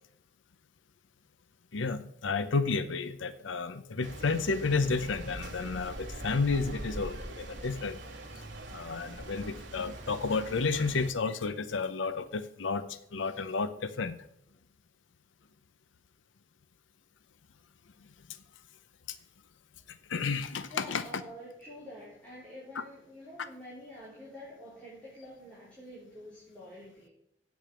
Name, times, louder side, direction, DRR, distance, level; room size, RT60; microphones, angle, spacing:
voice 1, 1.7-8.0 8.4-14.1 19.1-19.2 19.9-21.0 22.8-22.9, left 4 dB, 85° left, 13 dB, 0.6 m, -31 dB
sound 1, 4.0-11.1, right 1 dB, 80° right, 2.1 m, -43 dB
voice 2, 20.7-27.1, equal, 5° left, -10 dB, 3.7 m, -47 dB
8.6 x 6.2 x 8.3 m, 0.75 s
head